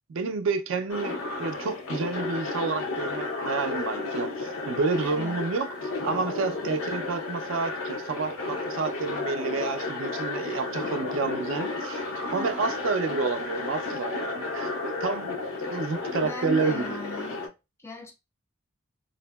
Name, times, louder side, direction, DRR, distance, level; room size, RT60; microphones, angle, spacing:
voice 1, 0.1-12.1 12.3-17.4, right 4 dB, 70° right, 0.4 m, -30 dB
sound 1, 0.9-17.5, left 3 dB, 80° left, 0.6 m, -32 dB
voice 2, 5.0-5.4 12.3-12.8 16.1-17.4 17.8-18.1, left 1 dB, 15° left, 0.4 m, -38 dB
2.7 x 2.5 x 2.2 m
head